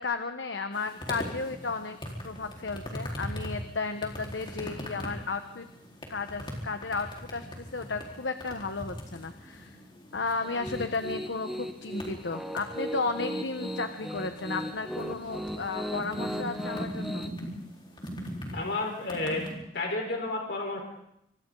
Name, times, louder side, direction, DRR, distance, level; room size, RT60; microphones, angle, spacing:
voice 1, 0.0-2.0 2.2-5.7 6.1-9.8 10.1-17.3, left 4 dB, 85° left, 7 dB, 1.3 m, -34 dB
sound 1, 0.7-19.5, equal, 30° left, 4.5 m, -41 dB
Piano, 10.4-17.3, equal, ahead, 1.5 m, -37 dB
voice 2, 18.5-19.4 19.7-20.8, left 2 dB, 65° left, 1 dB, 4.5 m, -31 dB
28.5 x 26.0 x 4.0 m, 0.81 s
head